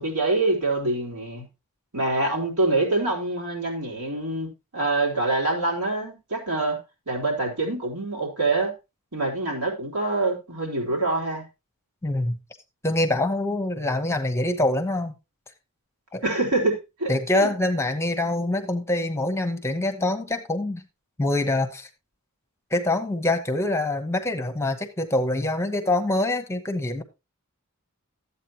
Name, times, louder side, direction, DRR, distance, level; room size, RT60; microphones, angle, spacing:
voice 1, 0.0-1.4 1.9-6.8 7.1-8.7 9.1-11.4 16.2-17.5, right 2 dB, 90° right, 3.6 m, -25 dB
voice 2, 12.0-12.4 12.8-15.2 16.1-16.2 17.1-20.8 21.2-21.9 22.7-27.0, left 2 dB, 10° left, 0.9 m, -25 dB
12.5 x 8.3 x 2.9 m
head